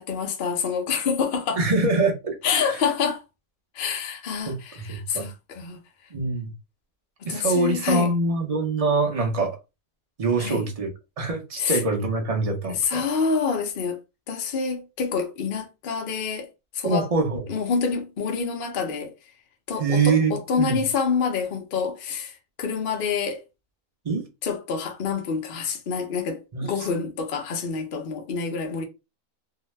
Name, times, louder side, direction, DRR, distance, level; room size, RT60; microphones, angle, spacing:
voice 1, 0.0-1.6 2.4-3.2 3.8-5.8 7.3-8.1 10.4-10.7 11.6-11.8 12.8-14.0 14.3-16.5 16.8-17.1 17.5-19.1 19.7-22.3 22.6-23.4 24.4-28.8, left 5 dB, 55° left, 0.6 m, -27 dB
voice 2, 1.6-2.8 4.5-5.3 6.1-6.5 7.3-9.6 10.2-10.9 11.2-13.0 16.8-17.5 19.8-20.8 24.0-24.3 26.5-26.9, right 3 dB, 55° right, 0.4 m, -24 dB
2.7 x 2.1 x 3.1 m
omnidirectional pair, 1.6 m